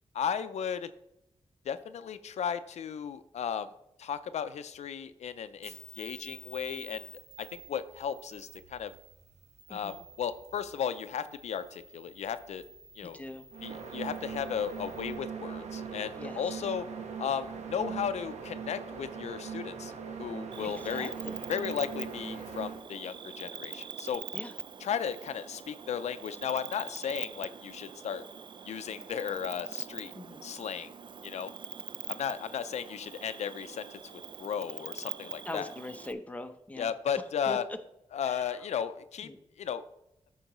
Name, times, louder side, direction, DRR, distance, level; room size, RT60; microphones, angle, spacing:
voice 1, 0.1-0.9 1.7-3.7 4.0-7.1 7.4-8.9 9.7-12.6 13.0-13.2 13.6-16.8 17.2-21.1 21.5-24.2 24.8-28.3 28.7-30.1 30.4-30.9 31.2-31.5 32.1-35.7 36.8-37.7 38.1-39.3 39.6-39.8, left 8 dB, 85° left, 12 dB, 0.4 m, -35 dB
sound 1, 5.6-15.1, equal, 70° right, 1.6 m, -53 dB
voice 2, 9.7-10.0 13.0-13.4 16.2-16.4 20.6-21.4 24.3-24.5 30.1-30.4 35.4-36.9 37.5-37.6 38.2-38.6 39.2-39.4, left 1 dB, 15° left, 6 dB, 0.7 m, -42 dB
sound 2, 13.5-22.8, right 6 dB, 90° right, 1.0 m, -40 dB
Cricket, 20.5-36.1, right 6 dB, 45° right, 0.3 m, -43 dB
13.0 x 4.7 x 3.0 m, 0.83 s
wide cardioid pair, 120°, 11 cm